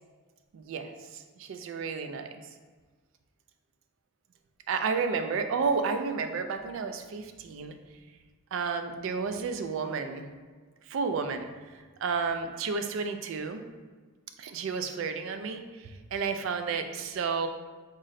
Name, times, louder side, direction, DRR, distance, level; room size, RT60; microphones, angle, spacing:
voice 1, 0.5-2.3 4.7-7.8 8.5-10.3 10.9-11.5 12.0-13.6 14.4-17.5, right 5 dB, 65° right, 7 dB, 0.3 m, -31 dB
3.7 x 2.1 x 3.9 m, 1.5 s
head